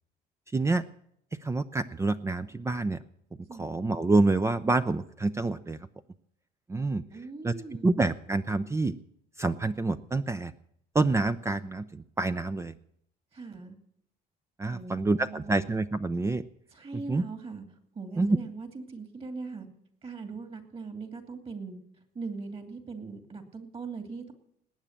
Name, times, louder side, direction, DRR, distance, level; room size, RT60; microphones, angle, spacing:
voice 1, 0.5-0.8 1.4-3.0 3.5-5.8 6.7-7.0 7.4-7.5 7.8-8.9 9.4-10.5 10.9-12.7 14.6-16.4 17.1-17.2 18.2-18.4, right 3 dB, 15° right, 11 dB, 0.5 m, -27 dB
voice 2, 7.1-8.0 13.3-13.8 14.7-15.7 16.7-17.6 17.9-19.7 20.0-21.8 22.1-24.3, right 4 dB, 35° right, 7 dB, 2.7 m, -40 dB
19.0 x 8.9 x 7.4 m, 0.71 s
cardioid pair, 110°, 17 cm